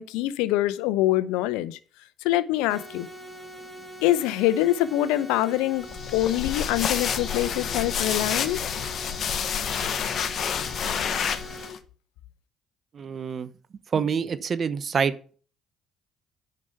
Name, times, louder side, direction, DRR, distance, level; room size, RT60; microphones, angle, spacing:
voice 1, 0.0-1.8 2.2-3.1 4.0-5.9 6.1-8.6, left 14 dB, 85° left, 0.7 m, -24 dB
sound 1, 2.5-11.7, left 1 dB, 15° left, 2.0 m, -48 dB
sound 2, 2.7-11.7, right 1 dB, ahead, 4.3 m, -43 dB
sound 3, 5.9-11.8, left 7 dB, 55° left, 1.0 m, -29 dB
voice 2, 12.9-13.5 13.9-15.1, right 6 dB, 50° right, 0.9 m, -26 dB
9.1 x 5.9 x 6.8 m
hypercardioid pair, 60°, 0 cm